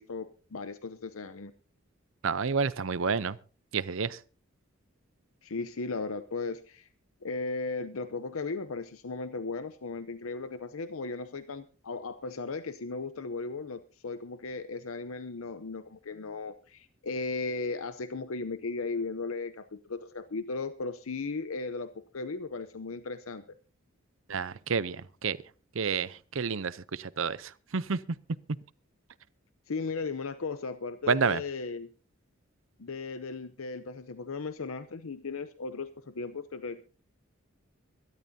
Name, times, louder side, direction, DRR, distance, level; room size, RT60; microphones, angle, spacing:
voice 1, 0.0-1.5 5.4-6.9 7.2-23.4 29.7-31.9 32.8-36.8, left 4 dB, 90° left, 0.7 m, -36 dB
voice 2, 2.2-3.4 3.7-4.2 24.3-25.4 25.7-28.0 31.1-31.4, right 5 dB, 75° right, 0.7 m, -29 dB
24.0 x 12.5 x 2.8 m
head